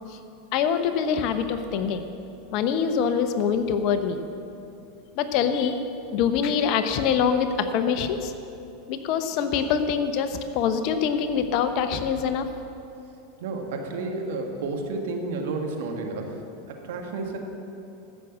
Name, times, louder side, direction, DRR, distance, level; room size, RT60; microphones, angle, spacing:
voice 1, 0.5-2.1 2.5-4.2 5.1-5.8 6.1-8.3 8.9-12.5, left 7 dB, 55° left, 9 dB, 0.9 m, -24 dB
voice 2, 13.4-16.4 16.7-17.4, right 3 dB, 70° right, 2 dB, 1.7 m, -31 dB
15.0 x 6.4 x 7.3 m, 2.7 s
hypercardioid pair, 90°, 0 cm